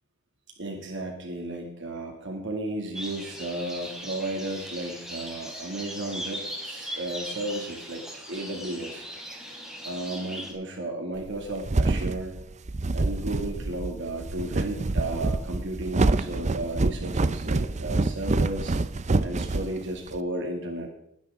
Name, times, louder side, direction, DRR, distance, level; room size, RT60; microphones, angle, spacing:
voice 1, 0.6-9.1 9.8-12.4 12.9-18.7 19.2-20.9, right 1 dB, 60° right, 2 dB, 2.4 m, -34 dB
sound 1, 2.9-10.5, equal, 5° right, 3.8 m, -39 dB
sound 2, 11.3-20.2, right 2 dB, 35° right, 0.6 m, -26 dB
20.5 x 10.5 x 3.7 m, 0.75 s
head